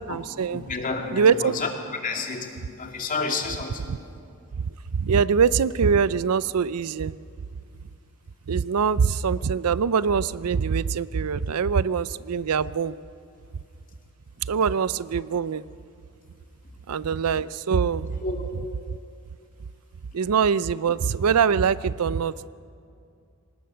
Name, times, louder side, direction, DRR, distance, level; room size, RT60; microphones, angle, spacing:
voice 1, 0.0-0.6 1.1-1.5 4.7-7.1 8.5-13.0 14.4-15.6 16.9-18.2 20.1-22.5, right 6 dB, 80° right, 18 dB, 0.5 m, -23 dB
voice 2, 0.5-1.7 2.0-2.5 2.8-3.9 18.2-18.5, left 4 dB, 40° left, 3 dB, 2.5 m, -30 dB
25.0 x 19.5 x 6.8 m, 2.4 s
head